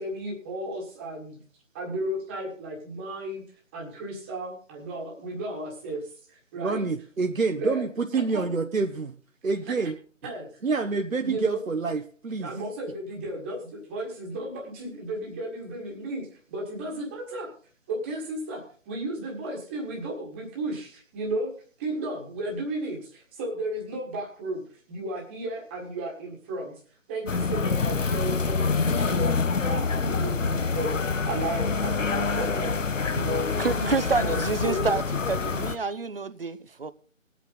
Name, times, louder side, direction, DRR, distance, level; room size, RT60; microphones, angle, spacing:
voice 1, 0.0-1.4 1.7-3.4 3.7-6.8 7.5-7.9 8.1-8.5 9.7-9.8 10.2-10.5 11.2-11.6 12.4-17.5 17.9-24.6 24.9-26.7 27.1-29.3 29.6-32.8 33.1-33.9 34.1-34.4 34.6-34.9, right 1 dB, 10° right, 1.5 m, -34 dB
voice 2, 6.6-9.1 9.4-10.0 10.6-12.5, right 4 dB, 85° right, 1.1 m, -27 dB
sound 1, 27.3-35.7, left 4 dB, 70° left, 1.1 m, -26 dB
voice 3, 33.6-35.0 35.3-36.9, right 4 dB, 45° right, 0.7 m, -28 dB
19.5 x 8.4 x 3.9 m
figure-of-eight pair, 160°, 39 cm